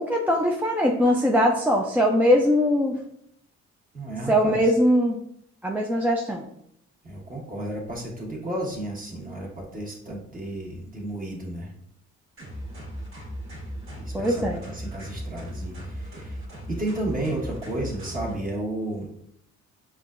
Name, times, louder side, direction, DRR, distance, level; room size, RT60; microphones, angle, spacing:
voice 1, 0.0-2.9 4.3-5.2 5.6-6.5 14.1-14.6, equal, 5° right, 0 dB, 0.3 m, -21 dB
voice 2, 3.9-4.6 7.0-11.7 13.9-16.4 16.7-19.1, right 1 dB, 30° right, -2 dB, 1.3 m, -32 dB
sound 1, 12.4-18.3, equal, 45° right, 1.4 m, -37 dB
5.3 x 2.2 x 2.4 m, 0.72 s
cardioid pair, 90°, 30 cm